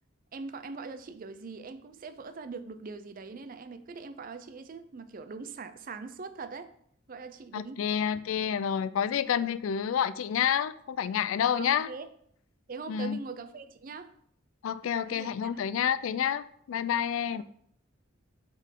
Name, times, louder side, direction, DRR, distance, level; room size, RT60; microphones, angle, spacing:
voice 1, 0.3-6.7 7.1-7.8 11.5-12.1 12.7-14.1 15.0-15.5 17.3-17.4, right 4 dB, 45° right, 0.5 m, -42 dB
voice 2, 7.5-11.9 12.9-13.2 14.6-17.4, left 8 dB, 90° left, 0.3 m, -29 dB
8.1 x 3.8 x 3.7 m
head